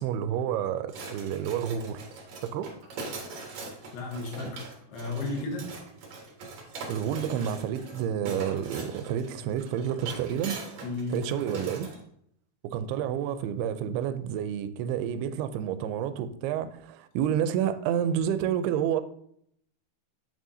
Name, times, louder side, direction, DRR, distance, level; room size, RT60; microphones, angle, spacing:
voice 1, 0.0-2.1 2.4-2.7 6.9-10.6 11.1-11.9 12.6-19.0, right 9 dB, 90° right, 2.6 m, -29 dB
sound 1, 0.9-12.0, right 3 dB, 55° right, 2.4 m, -41 dB
voice 2, 3.4-5.7 10.8-11.2, left 2 dB, 90° left, 3.6 m, -35 dB
8.6 x 6.3 x 2.7 m
omnidirectional pair, 4.5 m